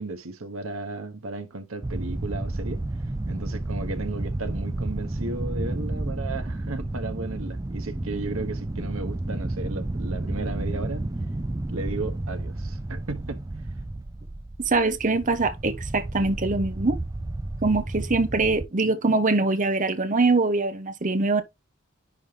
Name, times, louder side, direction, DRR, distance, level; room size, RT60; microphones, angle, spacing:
voice 1, 0.0-2.8 3.3-11.1 11.7-13.4, right 3 dB, 90° right, 1.3 m, -35 dB
sound 1, 1.8-18.7, right 2 dB, 15° right, 0.4 m, -31 dB
voice 2, 14.6-17.0 17.6-21.4, right 3 dB, 40° right, 0.9 m, -23 dB
10.0 x 3.7 x 3.4 m
head